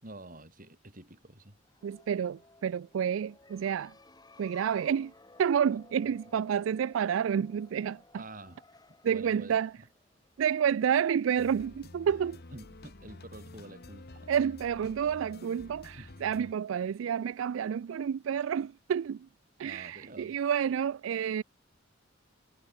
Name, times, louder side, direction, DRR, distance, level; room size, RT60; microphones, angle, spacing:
voice 1, 0.0-1.6 6.1-6.2 8.1-8.6 9.1-9.6 12.5-14.3 15.9-16.1 19.6-20.4, right 2 dB, 45° right, 6.0 m, -48 dB
sound 1, 1.6-11.1, left 3 dB, 20° left, 3.0 m, -58 dB
voice 2, 1.8-3.9 4.4-5.1 5.4-8.2 9.0-9.7 10.4-12.4 14.3-19.3 19.6-21.4, right 8 dB, 90° right, 0.3 m, -29 dB
sound 2, 11.4-16.5, left 2 dB, 55° left, 1.4 m, -49 dB
head